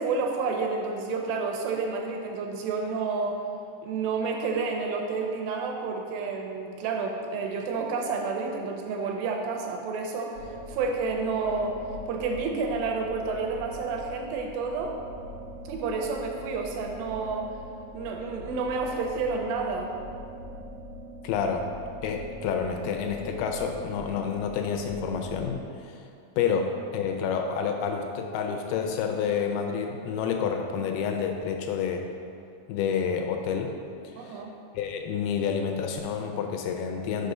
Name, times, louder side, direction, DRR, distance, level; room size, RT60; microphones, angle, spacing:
voice 1, 0.0-3.4 3.8-11.8 12.1-15.0 15.7-17.5 17.9-19.9 34.2-34.6, right 4 dB, 85° right, 2 dB, 2.8 m, -30 dB
sound 1, 10.3-25.6, equal, 70° right, 1.1 m, -42 dB
voice 2, 21.2-21.7 22.0-26.0 26.4-32.0 32.7-33.7 34.0-34.5 34.7-37.3, left 6 dB, 80° left, 4 dB, 2.3 m, -29 dB
6.6 x 4.9 x 5.5 m, 2.4 s
omnidirectional pair, 4.8 m